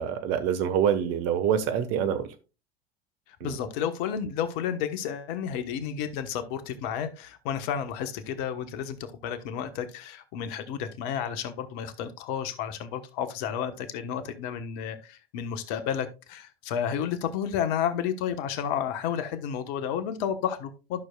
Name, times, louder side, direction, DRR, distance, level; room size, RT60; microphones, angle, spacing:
voice 1, 0.0-2.3 3.4-3.5, right 8 dB, 50° right, 1.3 m, -26 dB
voice 2, 3.4-9.0 9.2-21.0, left 8 dB, 55° left, 1.2 m, -31 dB
12.0 x 6.4 x 2.3 m
hypercardioid pair, 80°, 31 cm